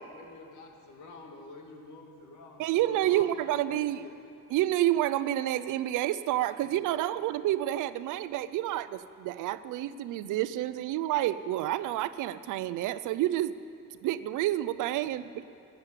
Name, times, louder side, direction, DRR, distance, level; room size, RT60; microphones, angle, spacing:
voice 1, 0.1-4.2 6.6-7.1 15.0-15.2, left 3 dB, 80° left, 2 dB, 2.0 m, -48 dB
voice 2, 2.6-4.1 4.5-13.6 14.0-15.4, right 13 dB, 85° right, 14 dB, 0.5 m, -29 dB
11.5 x 10.5 x 7.4 m, 2.4 s
cardioid pair, 90°, 30 cm